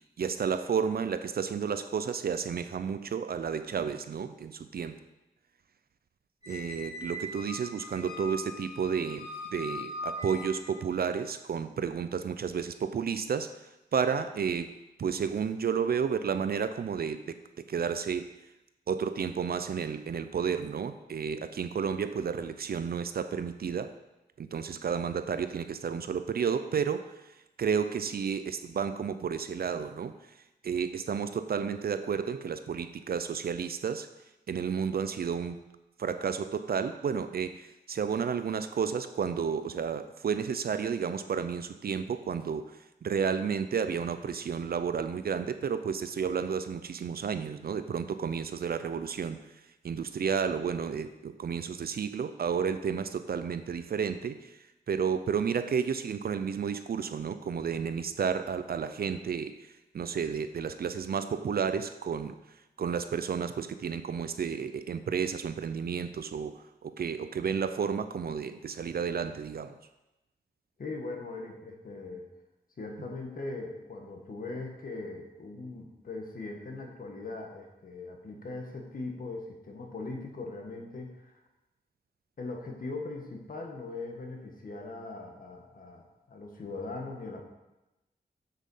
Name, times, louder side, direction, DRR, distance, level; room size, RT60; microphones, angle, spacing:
voice 1, 0.2-5.0 6.5-13.5 13.9-14.7 15.0-18.3 18.9-23.9 24.4-30.4 30.6-34.1 34.5-35.6 36.0-49.4 49.8-69.8, right 6 dB, 60° right, 10 dB, 0.5 m, -32 dB
Squeak, 6.4-10.9, left 2 dB, 40° left, 3.8 m, -41 dB
voice 2, 70.8-72.2 72.8-81.4 82.4-87.4, left 3 dB, 55° left, 1 dB, 1.6 m, -40 dB
7.5 x 7.1 x 5.5 m, 0.98 s
wide cardioid pair, 160°, 17 cm